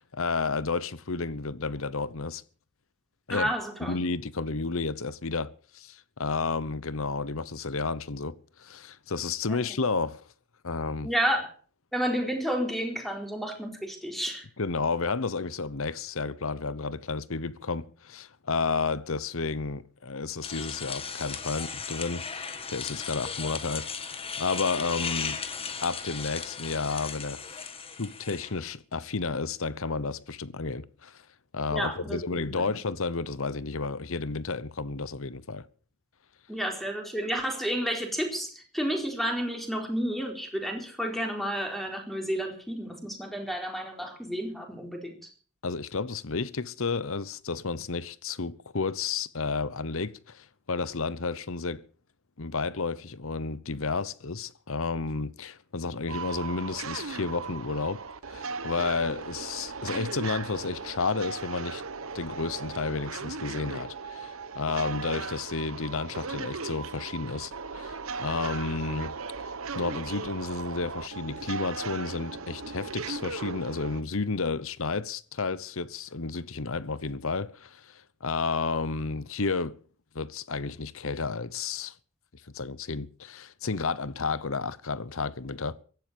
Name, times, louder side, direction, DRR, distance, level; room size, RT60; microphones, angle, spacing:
voice 1, 0.0-2.4 3.3-3.5 3.8-10.2 10.6-11.1 14.6-25.4 25.8-31.2 31.5-35.7 45.6-51.8 52.4-58.0 58.3-61.8 62.1-69.1 69.7-79.7 80.1-81.9 82.5-85.8, left 4 dB, 65° left, 1.0 m, -32 dB
voice 2, 3.3-4.0 9.5-9.6 11.0-11.5 11.9-14.5 31.7-32.7 36.5-45.3, equal, ahead, 4.2 m, -31 dB
sound 1, 20.4-28.7, left 6 dB, 25° left, 1.7 m, -36 dB
sound 2, 56.1-74.0, right 4 dB, 65° right, 1.2 m, -37 dB
16.0 x 12.0 x 6.9 m
head